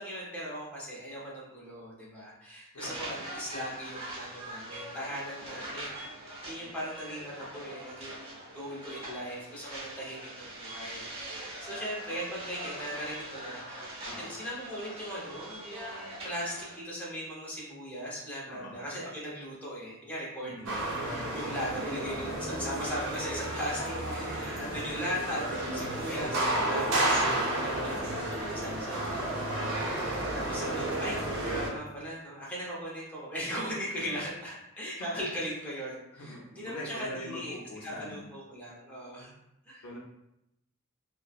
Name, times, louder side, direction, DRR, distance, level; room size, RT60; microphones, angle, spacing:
voice 1, 0.0-8.2 8.5-20.8 21.1-23.8 24.1-26.4 26.7-27.2 27.6-39.3 39.7-39.9, equal, 5° left, -7 dB, 0.7 m, -39 dB
voice 2, 2.7-3.2 14.0-14.3 18.5-18.8 20.4-20.7 21.4-21.6 26.0-26.3 26.6-26.7 27.8-28.0 33.9-34.3 36.2-38.2 39.8-40.0, left 1 dB, 90° left, -2 dB, 0.6 m, -43 dB
sound 1, 2.8-16.8, right 1 dB, 25° right, 0.7 m, -42 dB
sound 2, 20.7-31.7, right 1 dB, 60° right, 0.7 m, -32 dB
3.0 x 2.1 x 2.3 m, 0.85 s
head